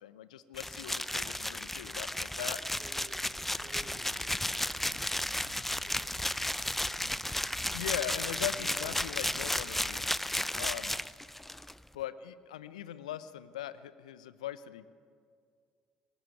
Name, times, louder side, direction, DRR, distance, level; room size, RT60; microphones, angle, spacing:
voice 1, 0.0-2.1 2.4-2.6 7.7-10.1 10.5-10.9 11.9-14.9, left 11 dB, 75° left, 15 dB, 0.8 m, -40 dB
sound 1, 0.5-11.7, left 1 dB, 5° left, 0.6 m, -34 dB
voice 2, 2.1-5.0 5.5-7.4 8.4-9.1, right 2 dB, 20° right, -2 dB, 4.8 m, -56 dB
sound 2, 3.3-10.0, right 2 dB, 70° right, 5.6 m, -55 dB
20.0 x 18.5 x 9.3 m, 2.2 s
figure-of-eight pair, 55°, 4 cm